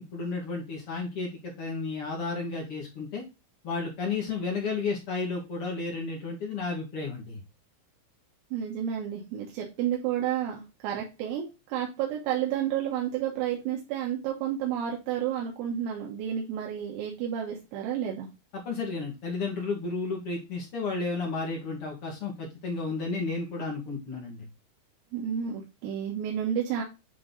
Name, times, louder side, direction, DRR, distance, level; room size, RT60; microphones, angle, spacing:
voice 1, 0.1-3.2 3.6-7.4 18.5-24.5, left 4 dB, 85° left, -2 dB, 1.2 m, -32 dB
voice 2, 8.5-18.3 25.1-26.8, right 9 dB, 85° right, -1 dB, 4.0 m, -31 dB
9.3 x 3.9 x 3.9 m, 0.26 s
omnidirectional pair, 6.0 m